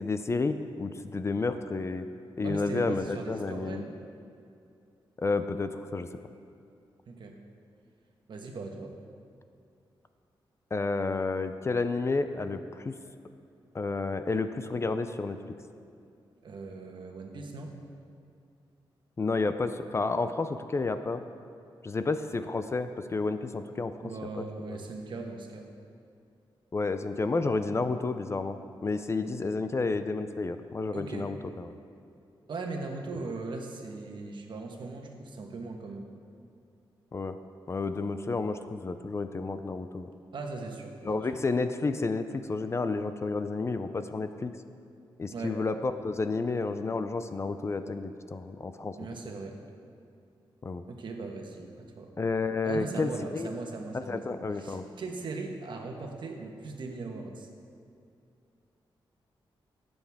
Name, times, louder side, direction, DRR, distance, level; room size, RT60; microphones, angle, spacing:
voice 1, 0.0-2.1 2.4-3.8 5.2-6.1 10.7-12.9 13.7-15.4 19.2-21.2 21.8-24.8 26.7-31.7 37.1-37.4 37.7-40.1 41.0-44.5 45.2-49.0 50.6-50.8 52.2-53.5 53.9-54.9, left 3 dB, 30° left, 9 dB, 0.4 m, -31 dB
voice 2, 2.4-3.9 7.1-7.4 8.3-8.9 16.4-17.8 24.0-25.7 30.9-31.3 32.5-36.1 40.3-41.3 45.3-45.6 49.0-49.6 50.9-52.1 52.6-57.5, right 3 dB, 60° right, 2 dB, 1.3 m, -39 dB
15.5 x 7.8 x 3.6 m, 2.5 s
wide cardioid pair, 110°, 9 cm